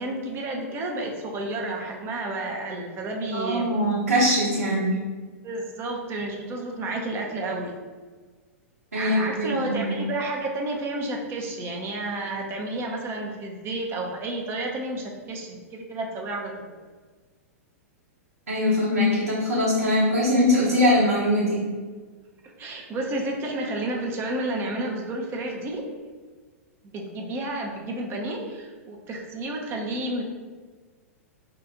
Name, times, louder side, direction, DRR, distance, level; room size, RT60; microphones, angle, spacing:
voice 1, 0.0-3.7 5.4-7.8 8.9-16.8 22.4-25.9 26.9-30.2, right 2 dB, 30° right, 1 dB, 0.6 m, -31 dB
voice 2, 3.3-5.0 8.9-10.0 18.5-21.7, left 1 dB, 85° right, -9 dB, 0.9 m, -22 dB
2.8 x 2.4 x 3.6 m, 1.4 s
hypercardioid pair, 105°, 8 cm